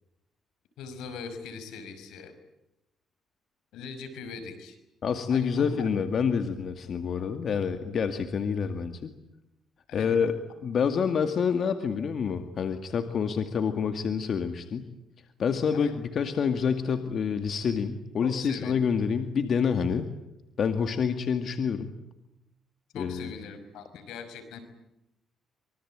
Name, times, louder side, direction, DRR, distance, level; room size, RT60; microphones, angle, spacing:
voice 1, 0.8-2.3 3.7-4.8 5.3-5.9 9.9-10.1 15.7-15.9 18.2-18.8 22.9-24.6, left 5 dB, 90° left, 10 dB, 5.6 m, -40 dB
voice 2, 5.0-9.1 9.9-10.4 10.6-14.9 15.4-20.1 20.6-21.9 22.9-23.3, left 6 dB, 55° left, 8 dB, 2.2 m, -27 dB
25.5 x 24.0 x 9.0 m, 0.88 s
cardioid pair, 90°, 0 cm